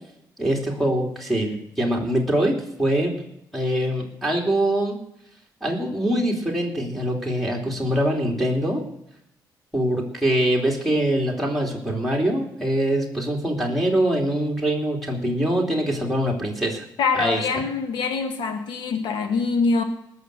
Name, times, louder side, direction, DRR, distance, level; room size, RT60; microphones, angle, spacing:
voice 1, 0.4-3.1 3.5-5.0 5.6-8.8 9.7-16.8 17.1-17.4, right 1 dB, ahead, -1 dB, 3.0 m, -23 dB
voice 2, 17.0-19.8, left 4 dB, 85° left, 7 dB, 1.5 m, -24 dB
19.0 x 6.6 x 8.1 m, 0.79 s
cardioid pair, 95°, 8 cm